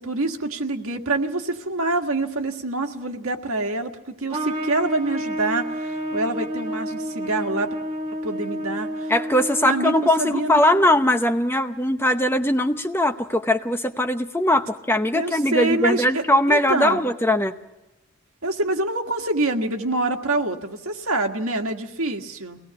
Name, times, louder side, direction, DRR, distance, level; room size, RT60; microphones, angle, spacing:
voice 1, 0.0-7.7 8.1-9.1 9.6-10.6 15.1-17.0 18.4-22.6, right 2 dB, 80° right, 4 dB, 1.7 m, -26 dB
Trumpet, 4.3-10.8, equal, 30° right, 2.2 m, -30 dB
voice 2, 9.1-17.5, left 1 dB, 10° left, 7 dB, 0.7 m, -20 dB
24.0 x 18.5 x 7.0 m, 1.1 s
head